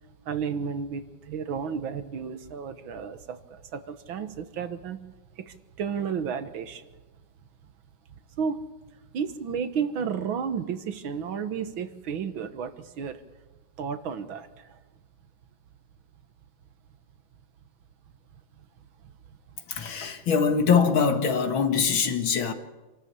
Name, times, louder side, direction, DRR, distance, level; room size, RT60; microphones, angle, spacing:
voice 1, 0.3-5.0 5.4-7.0 8.4-8.6 9.1-13.2 13.8-14.8, right 6 dB, 85° right, 2.1 m, -32 dB
voice 2, 19.7-22.5, left 6 dB, 80° left, 2.5 m, -23 dB
27.0 x 13.0 x 8.3 m
omnidirectional pair, 2.1 m